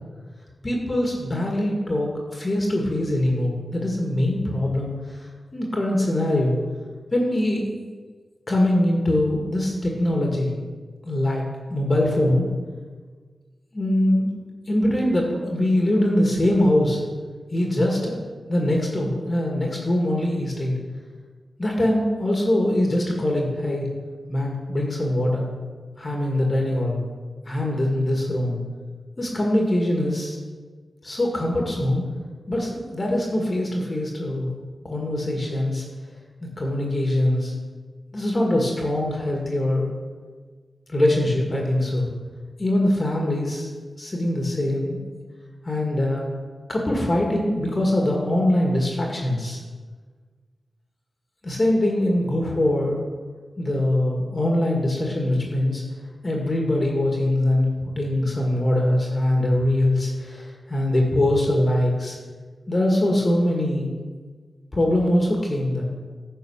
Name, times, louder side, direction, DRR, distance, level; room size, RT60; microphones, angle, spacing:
voice 1, 0.6-6.6 7.1-7.7 8.5-10.5 11.0-11.4 11.7-12.5 13.7-14.3 14.7-17.0 17.5-18.2 18.5-20.7 21.6-23.9 24.3-25.5 26.0-27.0 27.5-28.6 29.2-30.4 31.0-32.0 32.5-34.5 34.8-35.8 36.6-37.5 38.1-39.9 40.9-42.1 42.6-43.7 44.0-45.0 45.6-46.3 46.7-49.6 51.4-53.0 53.6-55.8 56.2-62.2 62.7-63.9 64.7-65.8, left 1 dB, 40° left, -1 dB, 1.9 m, -22 dB
10.0 x 4.5 x 6.5 m, 1.5 s
cardioid pair, 45°, 0 cm